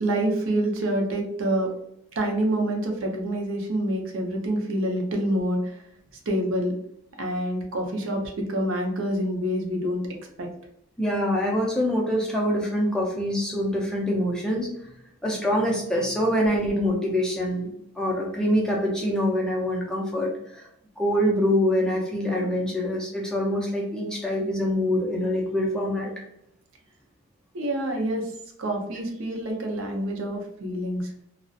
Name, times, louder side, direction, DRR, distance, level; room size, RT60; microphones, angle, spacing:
voice 1, 0.0-1.7 2.2-5.6 6.3-6.7 7.2-10.0 10.4-10.5 27.5-28.2 28.6-31.1, right 1 dB, 65° right, 1 dB, 0.5 m, -27 dB
voice 2, 11.0-14.7 15.2-20.7 21.0-26.1, equal, 5° left, -2 dB, 0.3 m, -25 dB
2.3 x 2.0 x 2.6 m, 0.76 s
head